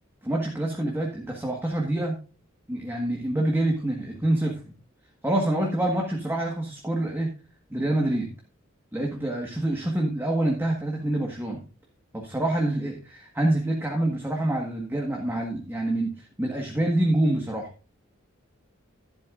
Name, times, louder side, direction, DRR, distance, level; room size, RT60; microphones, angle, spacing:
voice 1, 0.2-2.2 2.7-4.5 5.2-7.3 7.7-8.3 8.9-11.6 12.1-17.7, right 1 dB, 10° right, 0 dB, 1.6 m, -26 dB
11.5 x 11.5 x 2.6 m, 0.35 s
head